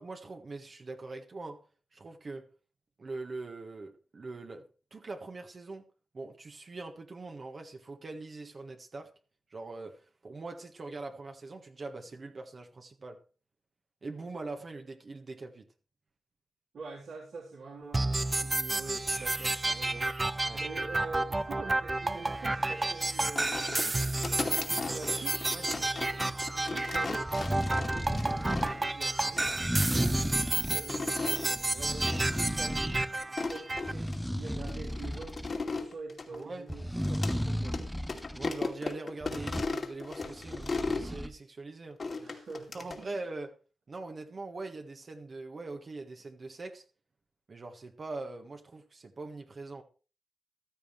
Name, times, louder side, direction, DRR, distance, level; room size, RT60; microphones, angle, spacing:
voice 1, 0.0-1.6 1.9-2.5 3.0-5.8 6.1-9.1 9.5-13.2 14.0-15.7 20.4-20.6 25.5-26.1 36.3-36.7 38.3-42.3 42.7-43.6 43.9-46.8 47.5-49.8, right 3 dB, 50° right, 1.6 m, -42 dB
voice 2, 16.7-20.1 20.5-25.4 26.1-35.4 35.8-37.8 42.2-43.1, right 4 dB, 75° right, 3.8 m, -45 dB
sound 1, 17.9-33.9, right 2 dB, 30° right, 0.7 m, -31 dB
sound 2, 23.4-28.9 29.4-30.0 30.7-31.5 32.0-32.4 32.6-32.7 33.2-34.2 34.7-37.4 37.7-37.8 38.1-41.1 42.0-43.0, left 3 dB, 50° left, 2.5 m, -37 dB
sound 3, 27.2-28.8 29.5-30.9 31.6-33.1 33.5-35.6 36.7-38.5 39.2-39.7 40.2-41.3, equal, ahead, 1.0 m, -34 dB
14.5 x 13.0 x 3.3 m
supercardioid pair, 50°, 0 cm